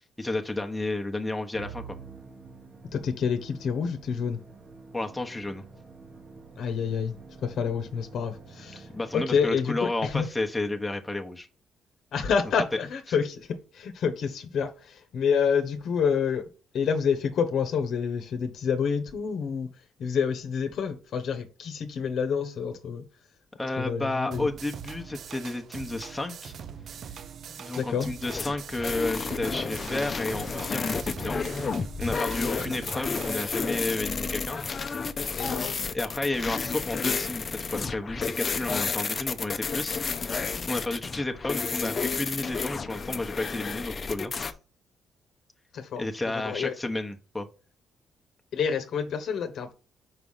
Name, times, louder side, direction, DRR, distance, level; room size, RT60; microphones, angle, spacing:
voice 1, 0.2-1.8 4.9-5.7 8.9-11.5 23.6-26.5 27.5-31.4 32.0-34.6 35.9-44.5 46.0-47.5, left 2 dB, 10° left, 1.1 m, -32 dB
Musical instrument, 1.5-10.1, right 5 dB, 45° right, 1.2 m, -48 dB
voice 2, 2.9-4.4 6.6-7.1 7.4-8.9 9.1-10.3 12.1-16.5 16.7-19.7 20.0-23.0 23.8-24.5 27.8-28.1 32.4-32.8 35.4-35.8 45.7-46.0 46.4-46.7 48.5-49.7, left 6 dB, 70° left, 1.0 m, -28 dB
sound 1, 24.3-33.4, right 7 dB, 60° right, 0.5 m, -42 dB
sound 2, 28.2-44.5, left 5 dB, 40° left, 0.7 m, -31 dB
5.0 x 4.8 x 5.6 m
cardioid pair, 90°, 0 cm